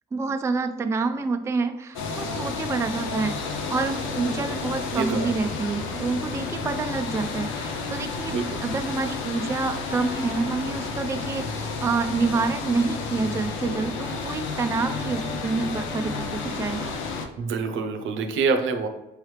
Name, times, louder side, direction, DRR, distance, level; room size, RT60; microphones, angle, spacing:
voice 1, 0.1-16.9, right 4 dB, 15° right, 7 dB, 0.3 m, -28 dB
sound 1, 1.9-17.3, left 4 dB, 90° left, 0.6 m, -31 dB
voice 2, 4.9-5.3 8.3-8.4 17.4-18.9, right 4 dB, 75° right, 6 dB, 0.6 m, -25 dB
4.6 x 3.1 x 3.2 m, 1.0 s
cardioid pair, 90°, 20 cm